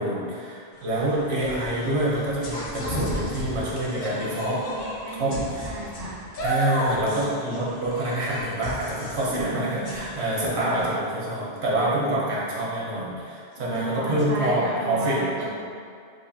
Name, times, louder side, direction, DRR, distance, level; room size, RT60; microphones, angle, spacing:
voice 1, 0.0-4.6 5.1-5.7 6.4-15.5, right 1 dB, 75° right, -6 dB, 1.1 m, -26 dB
sound 1, 0.7-10.9, equal, 60° left, 0.8 m, -33 dB
voice 2, 0.9-1.2 4.4-6.2 9.2-9.9 10.6-10.9 12.6-12.7 13.5-15.5, right 1 dB, 60° right, -5 dB, 0.7 m, -34 dB
4.6 x 2.5 x 2.6 m, 2.2 s
omnidirectional pair, 1.1 m